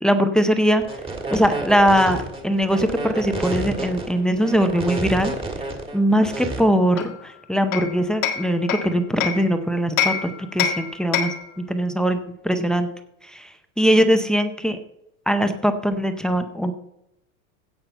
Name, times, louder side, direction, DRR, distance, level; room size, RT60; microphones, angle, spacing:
voice 1, 0.0-1.0 1.3-5.3 5.9-12.9 13.3-14.8 15.3-16.7, equal, ahead, 7 dB, 0.5 m, -21 dB
sound 1, 0.8-6.6, right 2 dB, 15° right, 1.7 m, -29 dB
Hammer, 7.0-9.5 10.0-11.5, left 8 dB, 90° left, 1.6 m, -26 dB
16.5 x 5.6 x 4.4 m, 0.82 s
supercardioid pair, 140°, 40 cm